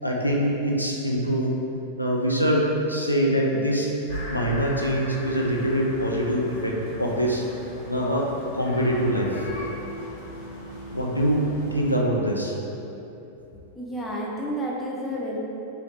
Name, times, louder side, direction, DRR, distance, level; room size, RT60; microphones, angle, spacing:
voice 1, 0.0-1.5 2.0-3.9 4.3-7.5 7.9-8.3 8.5-9.5 10.9-12.6, equal, 90° left, -2 dB, 0.3 m, -24 dB
sound 1, 4.1-11.9, left 1 dB, 60° left, 1.0 m, -37 dB
voice 2, 13.8-15.4, equal, 10° left, -4 dB, 0.6 m, -30 dB
3.2 x 2.7 x 3.1 m, 2.9 s
figure-of-eight pair, 90°, 0 cm